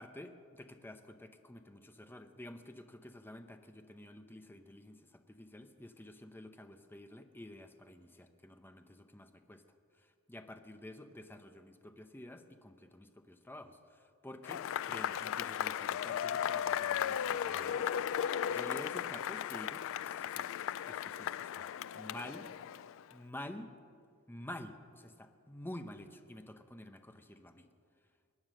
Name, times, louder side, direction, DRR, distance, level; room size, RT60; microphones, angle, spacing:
voice 1, 0.0-9.6 9.9-18.0 18.5-20.5 20.9-21.7 21.9-22.5 23.1-23.7 24.3-27.7, left 1 dB, 10° left, 7 dB, 0.7 m, -50 dB
Cheering / Applause / Crowd, 14.4-23.1, left 9 dB, 65° left, 0.4 m, -36 dB
22.5 x 9.5 x 6.4 m, 2.2 s
head